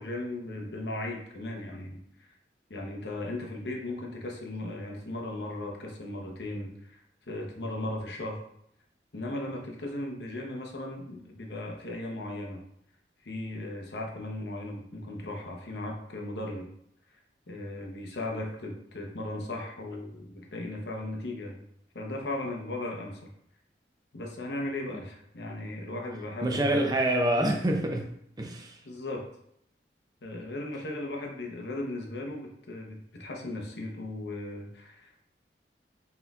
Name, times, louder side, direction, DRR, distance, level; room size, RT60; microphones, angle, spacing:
voice 1, 0.0-2.3 2.7-8.4 9.1-12.6 13.2-16.7 17.5-21.6 21.9-23.3 24.1-27.1 28.8-29.3 30.2-35.2, left 1 dB, 80° left, 1 dB, 0.8 m, -37 dB
voice 2, 26.4-28.0 28.4-28.7, right 1 dB, 20° right, 2 dB, 0.5 m, -26 dB
4.2 x 3.9 x 2.3 m, 0.72 s
head